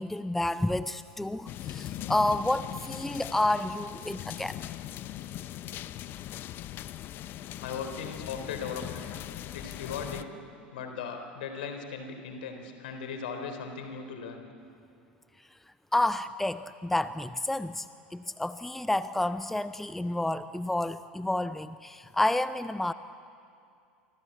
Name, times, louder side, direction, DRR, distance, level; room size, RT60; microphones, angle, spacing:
voice 1, 0.0-4.6 15.9-22.9, left 1 dB, 5° left, 14 dB, 0.7 m, -30 dB
sound 1, 1.5-10.2, left 12 dB, 40° left, 1.0 m, -40 dB
voice 2, 7.6-9.2 9.5-10.3 10.7-14.5, left 6 dB, 65° left, 6 dB, 4.0 m, -38 dB
29.0 x 24.5 x 8.4 m, 2.5 s
figure-of-eight pair, 75°, 5 cm